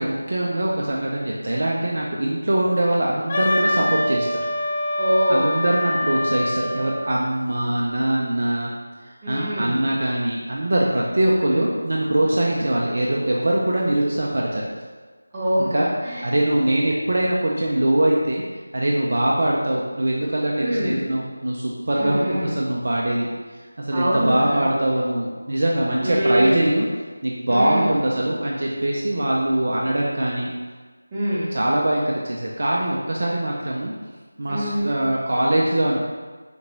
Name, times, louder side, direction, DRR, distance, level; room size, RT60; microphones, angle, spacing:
voice 1, 0.0-4.4 5.3-8.7 9.0-14.6 15.6-15.9 16.2-18.4 18.7-23.3 23.8-26.9 27.2-30.5 31.5-33.9 34.4-36.0, right 1 dB, 45° right, -3 dB, 0.4 m, -22 dB
Wind instrument woodwind instrument, 3.3-7.1, left 1 dB, 25° left, 0.3 m, -25 dB
voice 2, 5.0-5.6 9.2-9.8 11.3-11.6 15.3-16.2 20.6-21.0 22.0-22.5 23.9-24.6 26.0-26.8 27.5-27.9 31.1-31.5 34.5-34.9, equal, 15° right, -10 dB, 0.8 m, -24 dB
4.2 x 2.8 x 3.1 m, 1.4 s
figure-of-eight pair, 165°, 0 cm